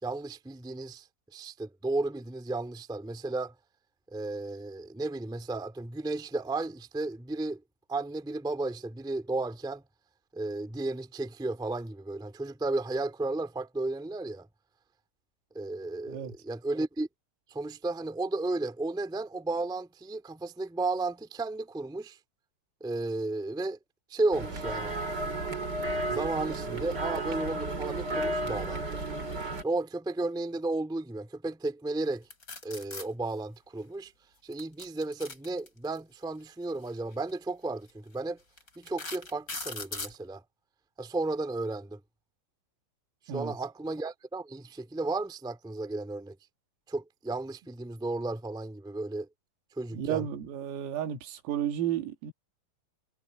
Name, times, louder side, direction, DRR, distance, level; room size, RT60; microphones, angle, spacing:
voice 1, 0.0-1.1 1.3-3.5 4.1-7.6 7.9-9.8 10.3-14.5 15.5-17.1 17.5-22.2 22.8-23.8 24.1-24.9 26.1-28.8 29.6-32.2 32.6-34.1 34.4-38.4 38.7-40.4 41.0-42.0 43.3-46.3 46.9-49.3 49.7-50.2, right 2 dB, ahead, 1.3 m, -33 dB
sound 1, 24.3-29.6, right 2 dB, 25° right, 3.2 m, -33 dB
sound 2, 32.3-33.1 34.5-36.0 37.1-37.3 37.9-38.0 38.6-40.2, left 3 dB, 15° left, 4.7 m, -39 dB
voice 2, 49.9-52.3, right 10 dB, 85° right, 4.9 m, -32 dB
omnidirectional pair, 5.9 m